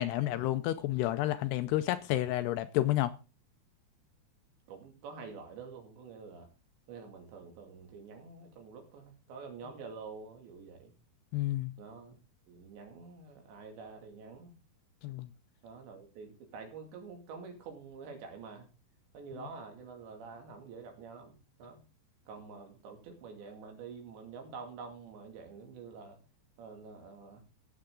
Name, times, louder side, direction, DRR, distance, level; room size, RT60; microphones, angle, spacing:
voice 1, 0.0-3.1 11.3-11.7 15.0-15.3, left 15 dB, 80° left, 2.5 m, -30 dB
voice 2, 4.7-6.5 6.9-10.9 11.8-12.2 12.5-14.6 15.6-18.7 19.1-21.8 22.3-26.2 26.6-27.4, right 5 dB, 75° right, 4.6 m, -47 dB
17.0 x 7.8 x 3.8 m
omnidirectional pair, 5.1 m